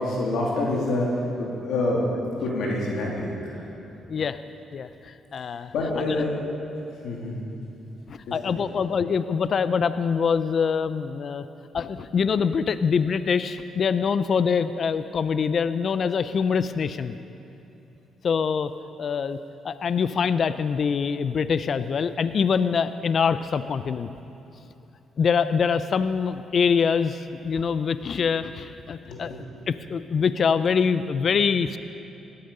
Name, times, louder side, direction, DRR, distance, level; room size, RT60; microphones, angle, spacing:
voice 1, 0.0-2.0 2.4-3.7 5.7-6.3 7.0-7.4 8.3-8.5 29.1-29.4, left 2 dB, 80° left, -3 dB, 2.6 m, -27 dB
voice 2, 4.7-5.7 8.1-11.4 11.7-17.2 18.2-18.7 19.0-19.4 19.6-24.1 25.2-29.3 29.7-31.8, left 6 dB, 50° left, 13 dB, 0.5 m, -24 dB
17.0 x 11.5 x 5.4 m, 2.8 s
cardioid pair, 90°, 0 cm